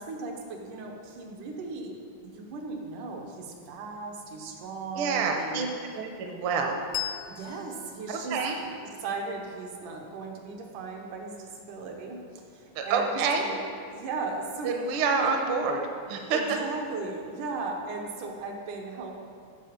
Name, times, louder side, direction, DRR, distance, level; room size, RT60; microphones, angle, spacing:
voice 1, 0.0-5.6 7.3-8.7 9.0-13.6 13.9-15.3 16.3-19.1, right 3 dB, 90° right, 1 dB, 2.5 m, -37 dB
voice 2, 4.9-5.7 5.9-6.8 8.1-8.6 12.7-13.4 14.6-15.8 16.1-16.6, right 4 dB, 70° right, 3 dB, 1.2 m, -27 dB
Bell, 6.9-10.0, left 12 dB, 80° left, 1.6 m, -40 dB
8.2 x 4.9 x 7.4 m, 2.2 s
omnidirectional pair, 3.5 m